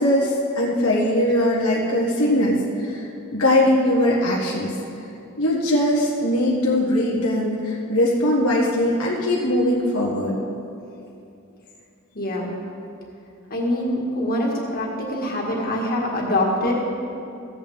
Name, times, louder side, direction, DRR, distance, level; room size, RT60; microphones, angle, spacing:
voice 1, 0.0-4.7 5.4-10.3, left 1 dB, 90° left, -5 dB, 1.5 m, -21 dB
voice 2, 12.1-12.5 13.5-16.7, left 1 dB, 45° left, -2 dB, 1.9 m, -24 dB
15.5 x 8.6 x 3.6 m, 2.6 s
head